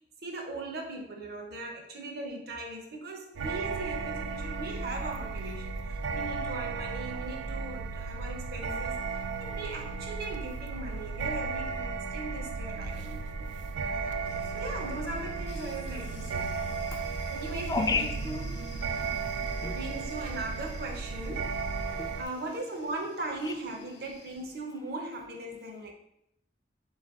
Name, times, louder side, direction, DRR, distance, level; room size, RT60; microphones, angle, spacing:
voice 1, 0.2-9.0 9.4-13.5 14.5-16.6 17.3-18.7 19.7-21.6 22.2-25.9, right 2 dB, 60° right, 1 dB, 0.8 m, -39 dB
sound 1, 3.3-22.2, right 4 dB, 85° right, 0.3 m, -35 dB
sound 2, 14.2-24.4, left 4 dB, 65° left, 0.6 m, -53 dB
voice 2, 16.9-17.3 17.7-18.2 19.1-19.3 19.6-19.9 21.9-22.2 23.4-23.5, left 4 dB, 20° left, 6 dB, 0.3 m, -32 dB
3.8 x 3.2 x 3.7 m, 0.78 s
head